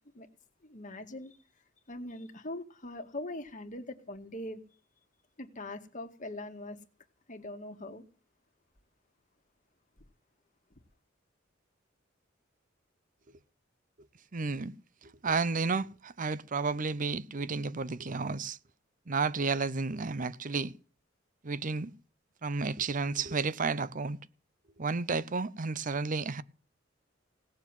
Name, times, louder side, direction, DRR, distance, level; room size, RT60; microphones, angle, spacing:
voice 1, 0.6-1.4 1.9-4.6 5.4-6.8 7.3-8.0, left 1 dB, 40° left, 2.0 m, -41 dB
voice 2, 14.3-14.7 15.0-18.6 19.1-20.7 21.4-21.9 22.4-24.2 24.8-26.4, right 4 dB, 45° right, 0.7 m, -32 dB
18.0 x 7.3 x 9.1 m
head